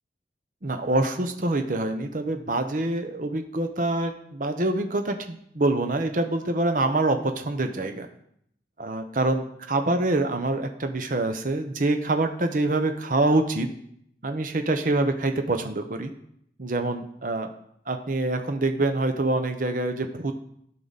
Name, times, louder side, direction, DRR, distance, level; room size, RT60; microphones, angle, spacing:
voice 1, 0.6-8.1 8.8-9.4 9.7-13.7 14.2-16.1 16.6-17.5 17.9-20.3, right 2 dB, 50° right, 7 dB, 0.8 m, -25 dB
12.5 x 5.8 x 4.0 m, 0.71 s
head